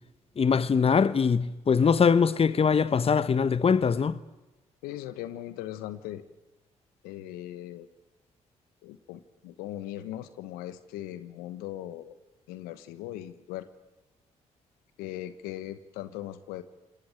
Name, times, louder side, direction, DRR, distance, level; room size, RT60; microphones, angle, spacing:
voice 1, 0.4-4.2, left 6 dB, 40° left, 1.1 m, -22 dB
voice 2, 4.8-6.2 7.0-7.9 8.8-12.1 12.5-13.7 15.0-16.6, left 13 dB, 85° left, 1.2 m, -39 dB
26.5 x 19.5 x 9.0 m
supercardioid pair, 55°, 15 cm